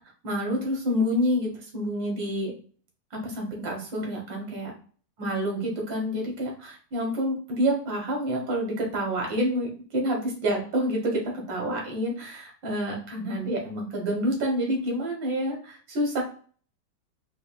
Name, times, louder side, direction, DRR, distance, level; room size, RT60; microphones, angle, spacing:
voice 1, 0.2-2.5 3.1-4.7 5.2-16.2, equal, 80° right, 0 dB, 1.9 m, -28 dB
4.8 x 2.8 x 2.3 m, 0.42 s
omnidirectional pair, 2.0 m